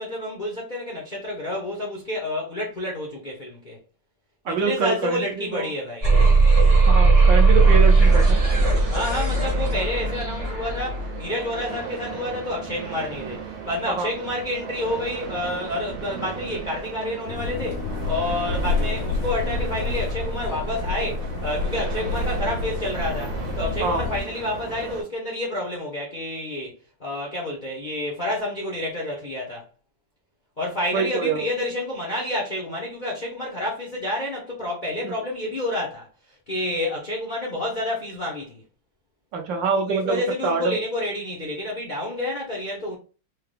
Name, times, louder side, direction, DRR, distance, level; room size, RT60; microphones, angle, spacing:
voice 1, 0.0-3.8 4.5-6.1 8.9-29.6 30.6-36.1 36.5-38.6 39.9-43.0, left 1 dB, 50° left, 0.5 m, -29 dB
voice 2, 4.4-5.7 6.9-8.4 13.9-14.1 23.8-24.0 30.9-31.5 35.0-35.1 39.3-40.8, right 4 dB, 70° right, 1.3 m, -25 dB
sound 1, 6.0-11.1, right 3 dB, 30° right, 0.6 m, -17 dB
sound 2, 8.0-25.0, right 6 dB, 85° right, 2.0 m, -36 dB
sound 3, 17.3-24.2, left 3 dB, 75° left, 1.1 m, -28 dB
4.6 x 2.2 x 3.3 m
omnidirectional pair, 2.3 m